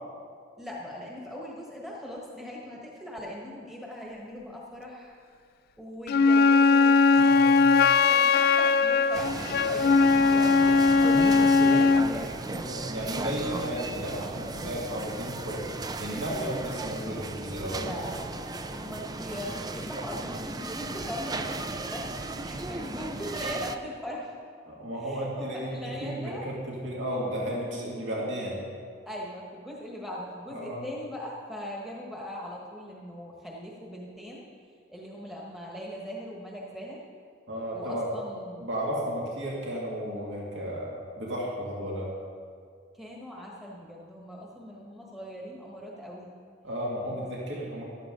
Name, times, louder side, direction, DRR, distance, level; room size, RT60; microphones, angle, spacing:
voice 1, 0.6-5.1 5.8-12.3 17.7-24.3 25.0-26.5 29.1-34.4 34.9-37.0 37.7-38.6 42.9-46.4, equal, ahead, -3 dB, 1.2 m, -40 dB
Wind instrument woodwind instrument, 6.1-12.1, left 4 dB, 50° left, 0.3 m, -20 dB
voice 2, 7.1-7.7 12.5-15.6 16.0-17.9 24.7-28.6 30.5-30.9 37.5-38.1 38.6-42.1 46.6-47.8, equal, 65° right, -4 dB, 2.2 m, -34 dB
sound 1, 9.1-23.8, right 2 dB, 20° right, 0.4 m, -36 dB
13.5 x 12.0 x 3.8 m, 2.1 s
head